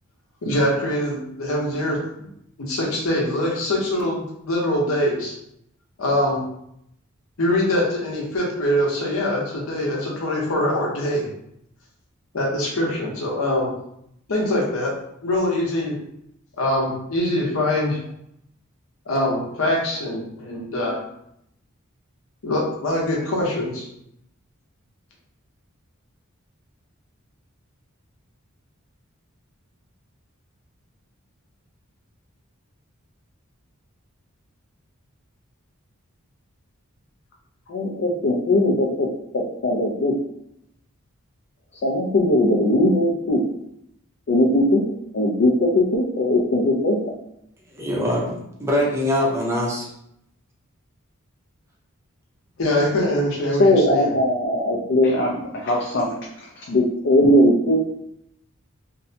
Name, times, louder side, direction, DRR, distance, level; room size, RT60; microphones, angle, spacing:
voice 1, 0.4-2.0 2.6-5.3 6.0-6.4 7.4-11.3 12.3-13.7 14.3-14.9 15.2-16.0 16.6-18.0 19.1-21.0 22.4-23.9 52.6-54.1, left 1 dB, 80° left, -2 dB, 0.8 m, -23 dB
voice 2, 37.7-39.1 39.3-40.1 41.8-43.4 44.3-44.8 45.1-47.0 53.6-56.1 56.7-58.0, left 1 dB, 55° left, -3 dB, 0.4 m, -19 dB
voice 3, 47.7-49.9, left 1 dB, 15° right, -2 dB, 0.5 m, -23 dB
2.6 x 2.1 x 2.6 m, 0.76 s
head